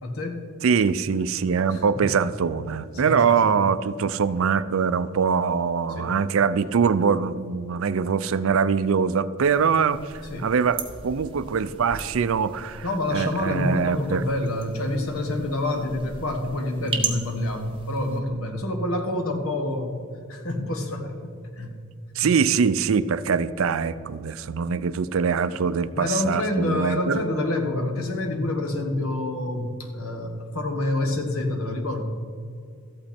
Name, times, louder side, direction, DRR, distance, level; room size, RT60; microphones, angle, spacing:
voice 1, 0.0-0.5 1.7-2.0 2.9-3.5 5.9-6.2 10.3-10.5 12.8-20.0 20.3-21.8 22.2-22.3 25.5-25.6 25.9-32.0, left 1 dB, 70° left, 1.5 m, -27 dB
voice 2, 0.6-12.9 13.1-14.2 22.1-27.2, right 6 dB, 65° right, 0.4 m, -23 dB
sound 1, 9.4-18.2, right 5 dB, 25° right, 1.2 m, -37 dB
13.5 x 8.7 x 4.3 m
head